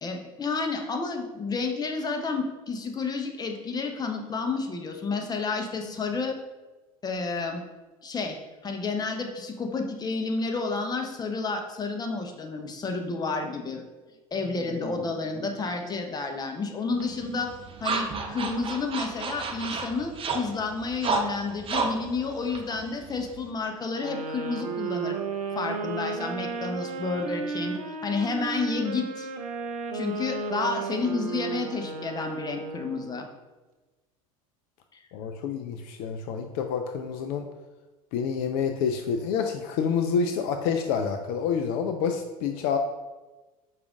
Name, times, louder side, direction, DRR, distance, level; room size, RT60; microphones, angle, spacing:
voice 1, 0.0-6.3 7.0-7.6 8.0-8.4 8.6-13.8 14.3-17.5 17.8-25.2 25.5-29.3 29.9-33.3 34.9-35.0, left 4 dB, 20° left, 4 dB, 0.7 m, -30 dB
sound 1, 17.0-23.5, right 4 dB, 30° right, 0.6 m, -32 dB
sound 2, 24.0-33.2, right 4 dB, 90° right, 0.5 m, -34 dB
voice 2, 35.1-37.5 38.1-42.8, left 6 dB, 60° left, 6 dB, 0.4 m, -28 dB
4.9 x 2.4 x 3.6 m, 1.2 s
hypercardioid pair, 80°, 18 cm